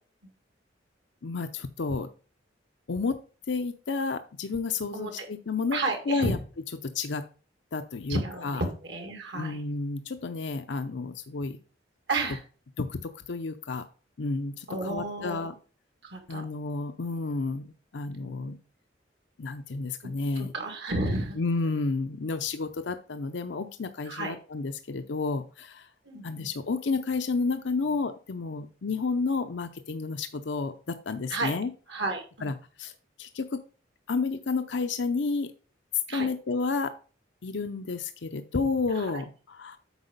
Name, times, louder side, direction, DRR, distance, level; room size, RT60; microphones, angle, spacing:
voice 1, 1.2-2.1 2.9-3.2 3.5-5.8 6.1-6.4 6.8-7.2 7.7-8.6 9.3-11.6 12.8-13.8 14.2-15.5 16.3-18.6 19.4-20.5 21.4-25.9 26.2-31.7 32.4-32.9 33.2-33.6 34.1-35.5 36.1-36.9 37.4-39.8, left 4 dB, 70° left, 9 dB, 0.6 m, -31 dB
voice 2, 4.9-5.3 5.7-6.4 8.1-9.6 12.1-12.4 14.7-15.5 16.0-16.4 20.0-21.4 24.1-24.4 26.1-26.5 31.3-31.5 31.9-32.5 36.1-36.3 39.1-39.2, right 2 dB, 65° right, 4 dB, 2.1 m, -32 dB
8.2 x 4.8 x 5.2 m, 0.37 s
head